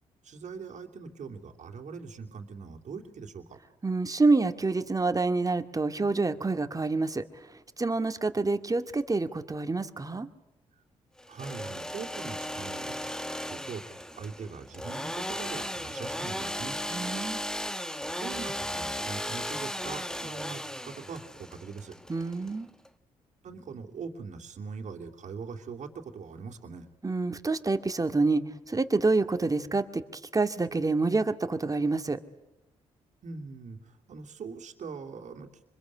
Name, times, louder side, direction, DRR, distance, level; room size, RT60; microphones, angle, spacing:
voice 1, 0.2-3.6 11.3-16.8 18.2-21.9 23.4-26.9 33.2-35.5, right 5 dB, 60° right, 3 dB, 3.0 m, -42 dB
voice 2, 3.8-7.2 7.8-10.3 16.9-17.4 22.1-22.7 27.0-30.0 30.3-32.2, right 3 dB, 25° right, 8 dB, 2.2 m, -27 dB
Engine / Sawing, 11.2-22.9, equal, 5° left, 1.3 m, -36 dB
25.5 x 22.0 x 9.7 m, 0.94 s
supercardioid pair, 55°, 14 cm